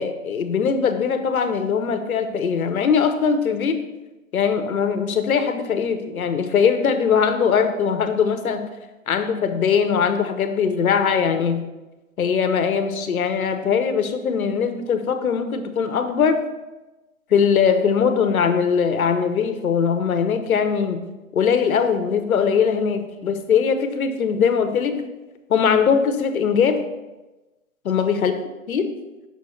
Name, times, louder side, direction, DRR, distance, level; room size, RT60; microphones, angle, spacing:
voice 1, 0.0-3.8 4.3-8.6 9.1-11.6 12.2-16.4 17.3-21.0 21.3-25.0 25.5-26.8 27.9-28.3 28.7-28.9, left 6 dB, 75° left, 8 dB, 1.0 m, -21 dB
7.1 x 6.0 x 3.2 m, 1.1 s
hypercardioid pair, 150°, 42 cm